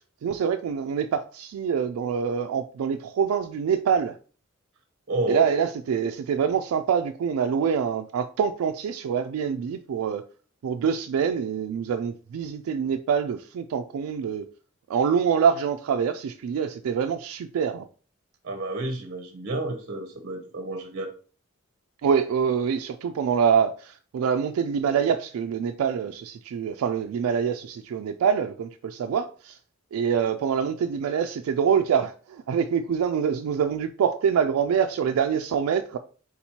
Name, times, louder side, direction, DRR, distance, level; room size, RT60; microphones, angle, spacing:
voice 1, 0.2-4.2 5.3-10.2 10.6-14.5 14.9-17.9 22.0-29.6 29.9-36.0, right 7 dB, 85° right, 0.3 m, -25 dB
voice 2, 5.1-5.5 18.4-21.1, right 1 dB, 55° right, 0.7 m, -30 dB
4.3 x 3.9 x 2.8 m
head